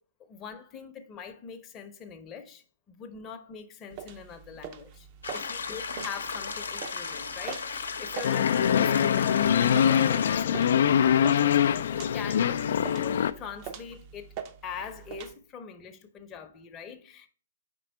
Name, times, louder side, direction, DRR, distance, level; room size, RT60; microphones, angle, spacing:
voice 1, 0.2-5.1 5.3-14.3 14.6-17.3, left 7 dB, 25° left, 0.7 m, -43 dB
sound 1, 3.9-15.3, right 8 dB, 35° right, 0.6 m, -44 dB
sound 2, 5.2-10.4, left 5 dB, 80° left, 0.7 m, -36 dB
sound 3, 8.2-13.3, left 9 dB, 65° left, 0.3 m, -23 dB
5.0 x 4.4 x 4.3 m
hypercardioid pair, 130°, 0 cm